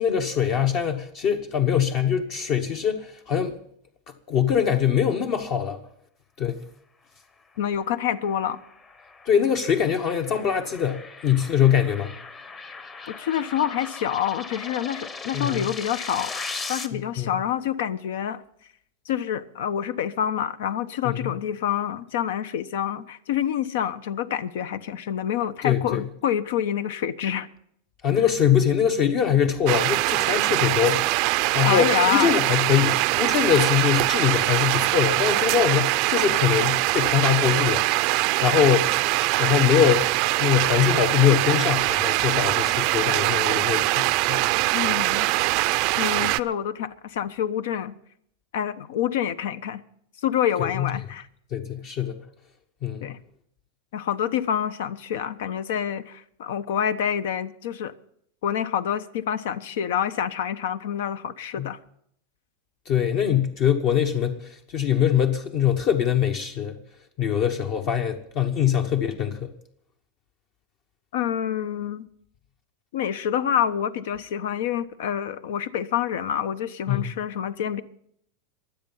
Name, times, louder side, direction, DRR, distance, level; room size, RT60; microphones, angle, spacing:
voice 1, 0.0-3.6 4.3-5.8 6.4-6.6 9.3-12.1 15.3-15.7 16.9-17.3 21.0-21.3 25.6-26.0 28.0-31.2 31.5-37.9 38.4-38.9 39.4-40.1 40.4-44.4 50.6-50.9 51.5-52.2 52.8-53.1 61.6-61.7 62.9-66.8 67.2-69.5 76.9-77.1, left 8 dB, 40° left, 1.1 m, -23 dB
voice 2, 7.6-8.6 13.1-18.4 19.0-27.5 31.6-32.3 44.7-45.3 46.0-47.9 48.5-49.8 50.2-51.3 53.0-53.2 53.9-57.9 58.4-61.8 71.1-72.1 72.9-77.8, left 9 dB, 70° left, 1.1 m, -27 dB
sound 1, 8.0-16.9, left 4 dB, 20° left, 1.1 m, -38 dB
sound 2, 29.7-46.4, right 21 dB, 45° right, 0.5 m, -23 dB
23.5 x 8.0 x 5.6 m
supercardioid pair, 155°, 0 cm